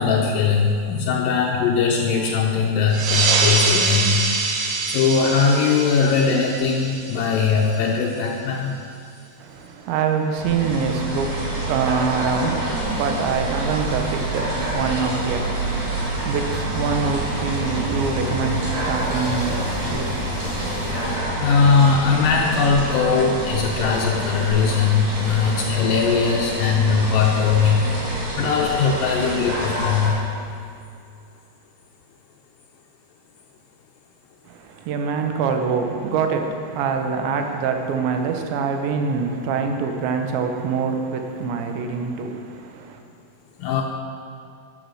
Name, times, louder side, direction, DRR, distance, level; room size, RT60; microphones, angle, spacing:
voice 1, 0.0-4.3 4.9-8.8 21.4-27.8 28.4-30.2 43.6-43.8, left 5 dB, 85° left, 0 dB, 2.0 m, -20 dB
sound 1, 2.9-8.0, right 4 dB, 70° right, 2.9 m, -24 dB
voice 2, 9.4-21.4 34.5-43.0, right 5 dB, 90° right, 5 dB, 3.3 m, -25 dB
sound 2, 10.4-30.1, right 1 dB, 50° right, 3.6 m, -27 dB
sound 3, 12.8-21.2, left 1 dB, 20° left, 3.1 m, -35 dB
12.0 x 8.5 x 6.4 m, 2.5 s
omnidirectional pair, 5.0 m